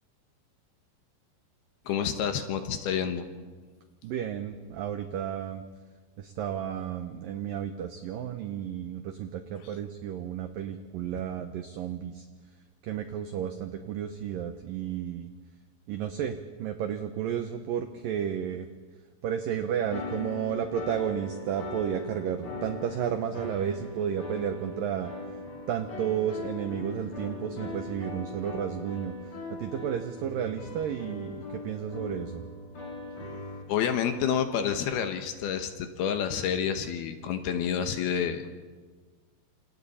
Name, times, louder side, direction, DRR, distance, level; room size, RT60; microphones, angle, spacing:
voice 1, 1.9-3.3 9.6-9.7 33.7-38.5, left 8 dB, 70° left, 7 dB, 2.7 m, -29 dB
voice 2, 4.0-5.6 6.2-12.3 12.8-15.3 15.9-18.7 19.2-25.1 25.7-29.1 29.6-32.4, right 9 dB, 85° right, 8 dB, 1.9 m, -32 dB
sound 1, 19.9-33.6, left 2 dB, 45° left, 5.0 m, -40 dB
28.0 x 27.5 x 4.2 m, 1.4 s
omnidirectional pair, 5.3 m